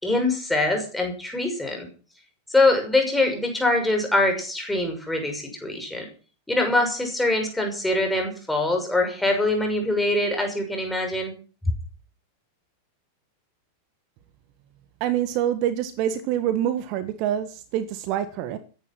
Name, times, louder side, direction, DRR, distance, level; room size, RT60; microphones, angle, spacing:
voice 1, 0.0-1.9 2.5-6.1 6.5-11.3, left 2 dB, 5° left, 6.1 m, -23 dB
voice 2, 15.0-18.6, right 11 dB, 45° right, 1.6 m, -26 dB
15.0 x 11.0 x 6.3 m
figure-of-eight pair, 90°, 0 cm